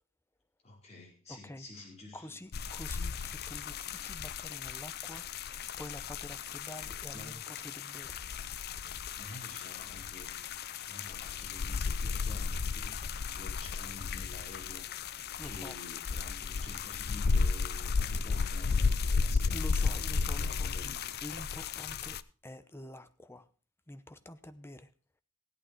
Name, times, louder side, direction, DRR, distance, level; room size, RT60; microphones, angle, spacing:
voice 1, 0.6-2.4 7.1-7.4 9.1-10.6 10.9-13.0 13.3-14.9 15.4-21.1, left 2 dB, 35° left, 4.5 m, -50 dB
voice 2, 1.3-1.7 2.1-8.2 15.4-15.8 19.5-21.0 21.2-23.5 23.9-24.9, left 1 dB, 10° left, 0.8 m, -47 dB
sound 1, 2.5-22.2, left 5 dB, 55° left, 0.5 m, -34 dB
17.0 x 8.8 x 4.6 m
head